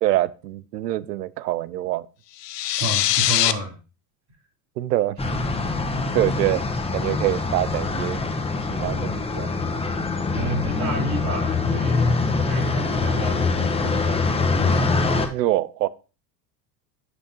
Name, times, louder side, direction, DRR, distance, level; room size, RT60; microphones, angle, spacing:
voice 1, 0.0-2.1 4.8-5.4 6.1-6.6 6.9-8.2 8.8-9.5 15.3-15.9, right 15 dB, 90° right, 0.6 m, -24 dB
sound 1, 2.4-3.5, left 14 dB, 90° left, 0.7 m, -21 dB
voice 2, 2.7-3.8 10.3-14.7, right 1 dB, 35° right, 4.0 m, -31 dB
sound 2, 5.2-15.3, left 3 dB, 10° left, 1.1 m, -24 dB
9.0 x 6.3 x 2.9 m
hypercardioid pair, 85°, 47 cm